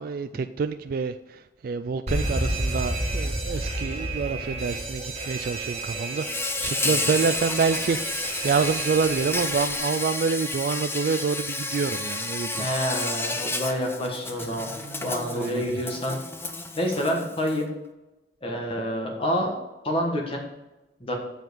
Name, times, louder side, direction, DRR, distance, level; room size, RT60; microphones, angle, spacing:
voice 1, 0.0-12.7 14.5-15.8, right 5 dB, 55° right, 9 dB, 0.3 m, -27 dB
Alarm, 2.1-9.8, right 1 dB, 35° right, 1.9 m, -31 dB
Insect, 6.2-17.6, left 2 dB, 15° left, 0.7 m, -31 dB
voice 2, 12.5-14.7 15.0-16.2 16.8-17.7 18.4-19.5 19.8-20.4 21.0-21.1, equal, 30° left, 1 dB, 1.4 m, -28 dB
7.5 x 5.4 x 6.2 m, 1.0 s
head